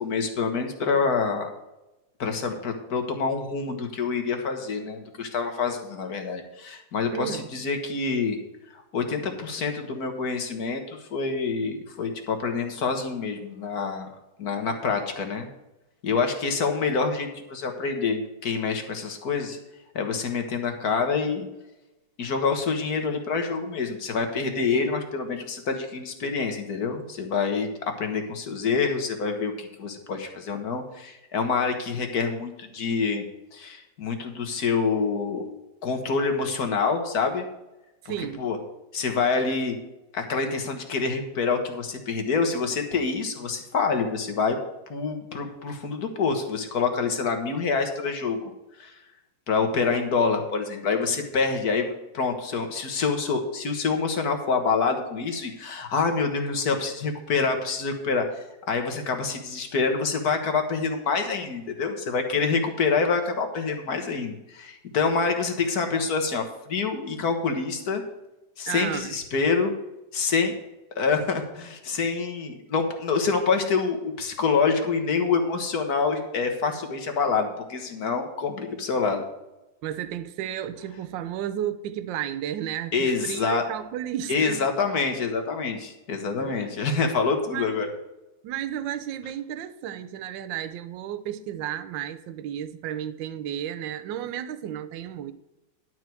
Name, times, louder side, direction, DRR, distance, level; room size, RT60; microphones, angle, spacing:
voice 1, 0.0-1.5 2.2-8.4 8.7-14.1 14.4-15.5 16.0-19.6 19.9-21.5 22.2-27.7 28.0-33.2 33.5-35.4 35.8-37.4 38.4-38.6 38.9-39.8 40.1-44.6 44.9-48.5 48.8-49.0 49.5-58.2 58.7-68.0 68.6-69.7 70.1-70.6 70.9-79.2 82.9-83.6 84.3-87.9, left 5 dB, 55° left, 1.8 m, -26 dB
voice 2, 7.1-7.5 38.0-38.5 68.7-69.1 79.8-84.6 86.4-86.7 87.5-87.7 88.4-95.3, right 10 dB, 75° right, 1.4 m, -33 dB
11.5 x 4.7 x 7.7 m
omnidirectional pair, 2.1 m